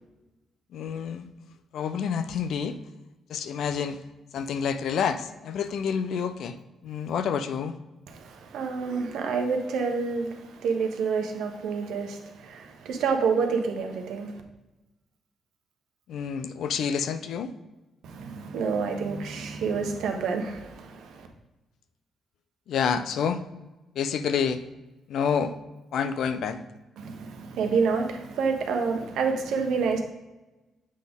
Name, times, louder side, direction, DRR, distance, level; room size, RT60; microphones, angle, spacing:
voice 1, 0.7-1.3 1.7-2.8 3.3-4.0 4.3-6.6 6.8-7.8 16.1-17.5 22.7-23.4 24.0-24.6 25.1-25.5 25.9-26.6, left 7 dB, 70° left, 0.5 m, -28 dB
voice 2, 8.1-14.4 18.0-21.3 27.0-30.0, right 5 dB, 75° right, 1.0 m, -28 dB
7.4 x 3.9 x 3.6 m
supercardioid pair, 60°, 0 cm